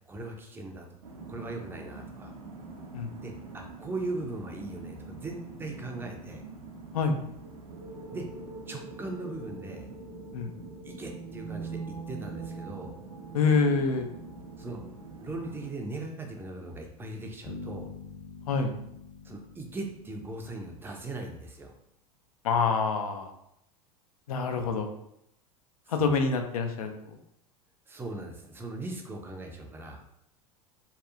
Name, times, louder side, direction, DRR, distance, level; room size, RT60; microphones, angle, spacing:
voice 1, 0.1-0.9 1.3-2.3 3.2-6.4 8.1-8.3 8.7-9.9 10.8-12.9 14.6-14.8 15.2-17.9 19.2-21.7 26.0-26.1 27.9-30.0, right 2 dB, 10° right, 2 dB, 0.4 m, -39 dB
sound 1, 1.0-15.7, right 3 dB, 70° right, 0.5 m, -43 dB
voice 2, 13.3-14.1 18.5-18.7 22.4-23.3 24.3-24.9 25.9-27.2, left 4 dB, 70° left, 5 dB, 0.4 m, -26 dB
sound 2, 17.4-21.2, left 3 dB, 50° left, 1.0 m, -45 dB
2.7 x 2.3 x 2.4 m, 0.76 s
figure-of-eight pair, 80°, 19 cm